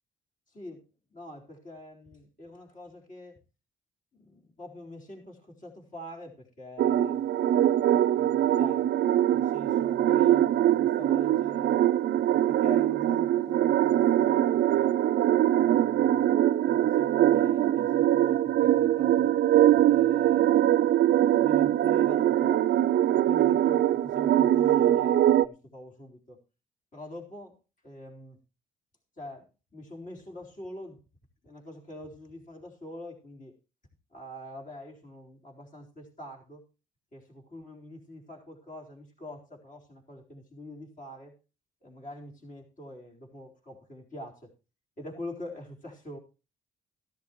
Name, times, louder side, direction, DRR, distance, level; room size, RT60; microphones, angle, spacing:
voice 1, 0.5-0.8 1.1-3.4 4.1-7.3 8.1-8.9 9.3-11.8 12.1-14.9 15.5-19.4 19.9-20.6 21.4-22.7 23.1-26.4 26.9-27.6 27.8-28.4 29.2-31.0 31.4-33.5 34.1-36.6 37.1-41.3 41.8-44.5 45.0-46.2, left 1 dB, 40° left, 0 dB, 4.1 m, -45 dB
sound 1, 6.8-25.5, right 12 dB, 60° right, 0.5 m, -23 dB
14.0 x 12.5 x 3.0 m, 0.31 s
cardioid pair, 90°, 20 cm